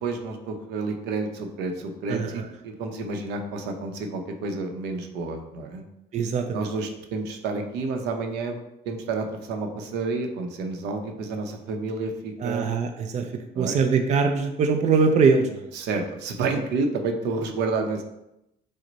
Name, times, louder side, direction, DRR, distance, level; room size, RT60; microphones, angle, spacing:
voice 1, 0.0-5.8 6.5-8.6 8.8-12.7 13.5-13.8 15.7-18.0, right 3 dB, 85° right, 5 dB, 0.7 m, -30 dB
voice 2, 2.1-2.5 6.1-6.7 12.4-15.7, right 5 dB, 45° right, 5 dB, 0.5 m, -23 dB
6.2 x 2.1 x 4.0 m, 0.86 s
cardioid pair, 110°, 17 cm